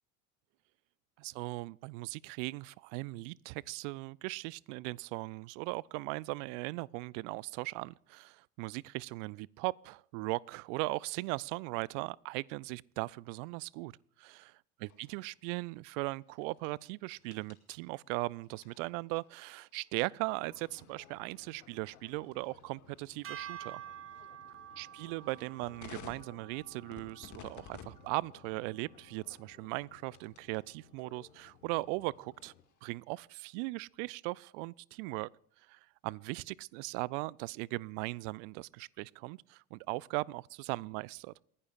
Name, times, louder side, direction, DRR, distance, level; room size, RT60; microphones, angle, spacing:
voice 1, 1.2-13.9 14.2-14.5 14.8-23.8 24.8-32.5 32.8-35.3 35.7-41.3, right 23 dB, 60° right, 0.5 m, -38 dB
sound 1, 14.8-30.6 31.0-33.1, left 7 dB, 40° left, 2.1 m, -58 dB
sound 2, 20.4-32.6, left 10 dB, 75° left, 1.5 m, -60 dB
sound 3, 23.2-29.6, right 10 dB, 30° right, 1.2 m, -50 dB
28.5 x 11.0 x 2.5 m
figure-of-eight pair, 65°, 44 cm